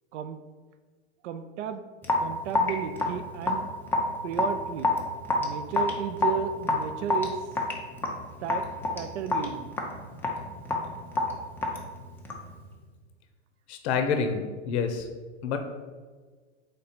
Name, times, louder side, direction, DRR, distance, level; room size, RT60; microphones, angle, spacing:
voice 1, 1.2-1.9 2.2-3.7 4.2-5.0 5.4-7.6 8.4-8.7 8.9-9.7, right 8 dB, 75° right, 10 dB, 0.5 m, -33 dB
Raindrop / Drip, 2.0-12.5, left 2 dB, 5° left, 0.3 m, -29 dB
voice 2, 13.7-15.1 15.4-15.6, left 6 dB, 70° left, 6 dB, 0.6 m, -27 dB
3.7 x 3.3 x 4.3 m, 1.4 s
hypercardioid pair, 120°, 35 cm